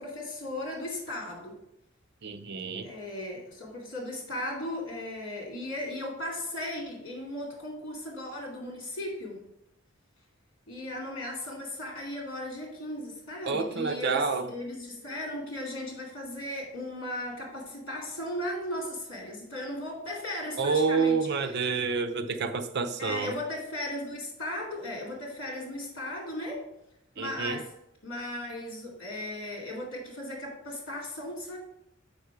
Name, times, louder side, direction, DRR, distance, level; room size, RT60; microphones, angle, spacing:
voice 1, 0.0-1.6 2.8-9.4 10.7-21.2 21.4-21.5 23.0-26.7 27.2-27.7 28.0-31.6, left 1 dB, 60° left, 2.3 m, -36 dB
voice 2, 2.2-2.9 13.5-14.5 20.6-23.3 27.2-27.6, right 4 dB, 55° right, 0.6 m, -28 dB
7.2 x 5.3 x 4.6 m
head